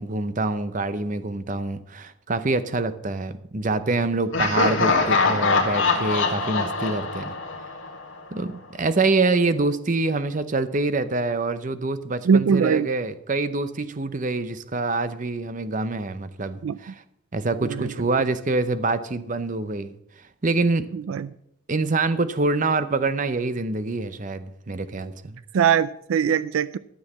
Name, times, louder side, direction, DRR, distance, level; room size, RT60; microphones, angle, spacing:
voice 1, 0.0-7.3 8.3-8.5 8.8-17.0 17.3-19.9 20.4-20.8 21.7-25.4, right 3 dB, 35° right, 12 dB, 0.7 m, -25 dB
Laughter, 4.3-8.2, left 4 dB, 60° left, 1.7 m, -23 dB
voice 2, 12.3-12.9 16.6-16.8 17.6-17.9 20.9-21.3 25.5-26.8, right 7 dB, 75° right, 17 dB, 0.3 m, -21 dB
12.5 x 6.3 x 7.3 m, 0.76 s
head